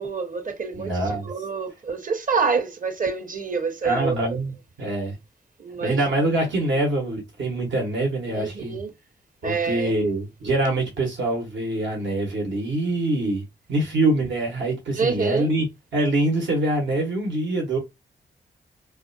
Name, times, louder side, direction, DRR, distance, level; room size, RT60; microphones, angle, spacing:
voice 1, 0.0-4.4 5.6-6.0 8.3-8.9 9.4-9.9 14.9-15.5, right 5 dB, 45° right, 0.8 m, -27 dB
voice 2, 0.7-1.3 3.8-4.5 4.8-5.2 5.8-8.8 9.4-13.4 13.7-15.7 15.9-17.8, right 2 dB, 75° right, 1.0 m, -24 dB
2.4 x 2.2 x 2.5 m
supercardioid pair, 45°, 20 cm